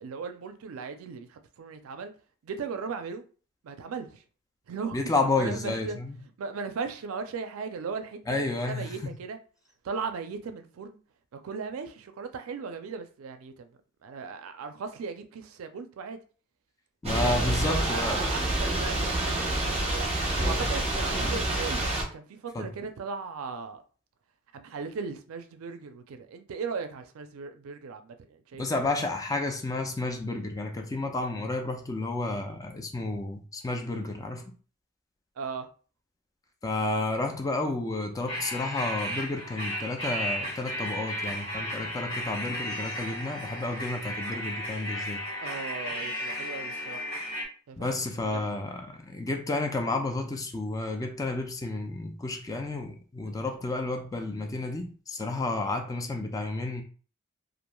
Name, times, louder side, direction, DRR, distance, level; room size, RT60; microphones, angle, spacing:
voice 1, 0.0-2.1 2.4-3.2 3.6-4.2 4.7-5.0 5.4-6.0 6.4-9.4 9.8-11.0 11.3-13.7 14.0-16.2 17.1-23.8 24.5-28.8 35.4-35.7 45.4-47.1 47.7-48.0 48.3-48.5 53.2-53.4, right 5 dB, 90° right, 0.4 m, -37 dB
voice 2, 4.9-6.2 8.3-9.1 17.0-18.3 22.5-22.7 28.5-34.6 36.6-45.2 47.8-56.8, left 2 dB, 15° left, 0.3 m, -31 dB
Thunder / Rain, 17.0-22.0, right 1 dB, 30° right, 0.7 m, -27 dB
sound 1, 38.3-47.4, equal, 75° left, 1.2 m, -34 dB
3.0 x 2.4 x 2.2 m
head